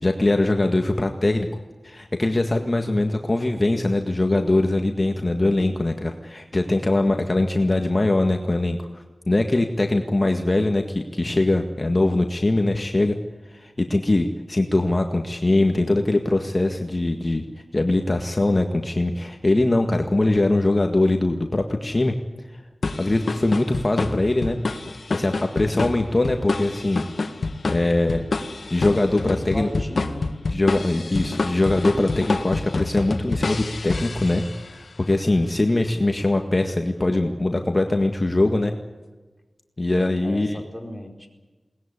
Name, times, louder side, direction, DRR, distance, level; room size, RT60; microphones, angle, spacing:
voice 1, 0.0-1.5 1.8-13.2 13.5-17.4 17.7-22.1 23.0-24.6 25.1-27.0 27.7-28.2 28.7-29.7 30.5-34.4 35.1-38.7 39.8-40.6, left 2 dB, 35° left, 4 dB, 1.7 m, -22 dB
sound 1, 22.8-34.8, left 3 dB, 75° left, 1.7 m, -28 dB
voice 2, 29.1-30.4 40.2-41.3, equal, ahead, 3 dB, 4.6 m, -35 dB
22.0 x 19.5 x 9.9 m, 1.2 s
wide cardioid pair, 80°, 0 cm